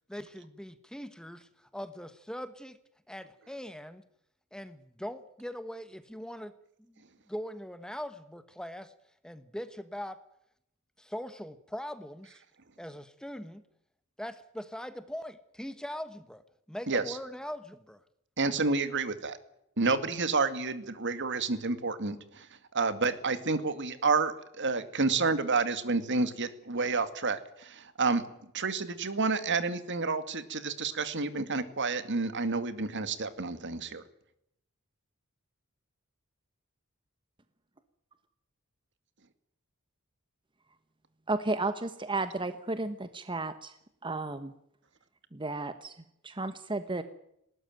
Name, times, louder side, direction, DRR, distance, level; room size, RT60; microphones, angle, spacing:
voice 1, 0.1-2.8 3.1-4.0 4.5-6.5 6.8-6.9 7.3-8.9 9.2-10.2 11.0-12.4 12.8-13.6 14.2-18.0, equal, 5° left, 12 dB, 1.1 m, -41 dB
voice 2, 18.4-19.4 19.8-22.5 22.7-28.2 28.5-34.0, right 4 dB, 55° right, 11 dB, 2.2 m, -29 dB
voice 3, 41.3-43.7 44.0-44.5 45.3-45.9 46.2-47.0, right 2 dB, 25° right, 10 dB, 1.2 m, -33 dB
20.0 x 18.0 x 9.2 m, 0.77 s
head